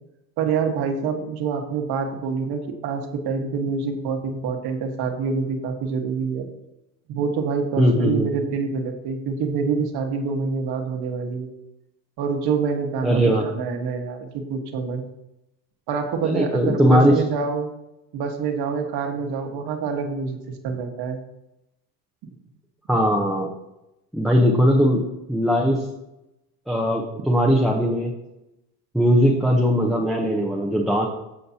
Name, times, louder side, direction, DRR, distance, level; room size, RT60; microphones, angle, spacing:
voice 1, 0.4-6.5 7.1-11.5 12.2-15.0 15.9-17.7 18.1-20.4 20.6-21.2, right 5 dB, 55° right, 4 dB, 1.7 m, -26 dB
voice 2, 7.8-8.2 13.0-13.5 16.2-17.2 22.9-23.5 24.1-25.9 26.7-28.1 28.9-31.1, equal, ahead, -2 dB, 0.9 m, -19 dB
15.0 x 5.2 x 2.9 m, 0.91 s
supercardioid pair, 125°, 46 cm